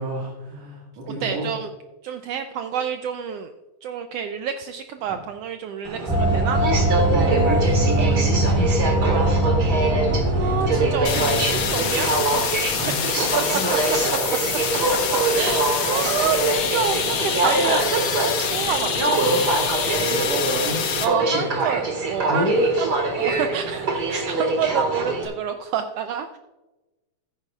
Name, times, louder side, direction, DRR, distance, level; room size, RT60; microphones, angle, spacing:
voice 1, 0.0-1.5 5.1-5.2 6.3-6.4 7.1-10.6 12.7-14.3 19.2-21.5 22.3-22.7, equal, 65° right, -3 dB, 3.0 m, -30 dB
voice 2, 1.2-1.7 2.0-3.5 3.8-6.6 10.1-12.2 12.4-12.5 13.5-14.0 14.3-14.4 15.3-19.0 21.0-22.4 22.8-26.4, right 8 dB, 85° right, 7 dB, 1.4 m, -28 dB
Aircraft, 5.8-25.3, right 2 dB, 40° right, 2.0 m, -24 dB
sound 1, 6.1-12.8, right 1 dB, ahead, 3.5 m, -22 dB
sound 2, 11.0-21.0, left 6 dB, 70° left, 1.0 m, -26 dB
14.5 x 9.7 x 2.4 m, 1.1 s
omnidirectional pair, 3.3 m